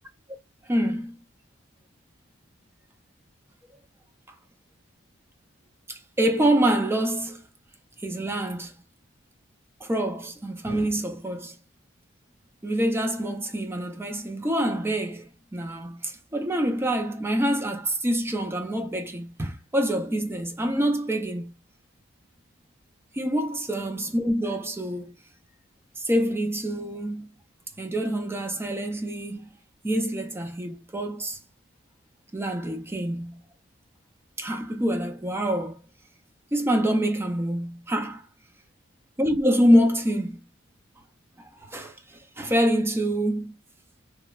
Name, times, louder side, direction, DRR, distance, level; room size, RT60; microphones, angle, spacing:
voice 1, 0.7-1.2 5.9-7.4 8.0-8.7 9.8-11.6 12.6-21.5 23.1-25.1 26.0-27.3 27.8-29.5 29.8-31.4 32.3-33.4 34.4-35.8 36.5-38.3 39.2-40.4 41.4-43.5, equal, 10° right, 0.4 m, -26 dB
3.0 x 2.1 x 2.3 m
head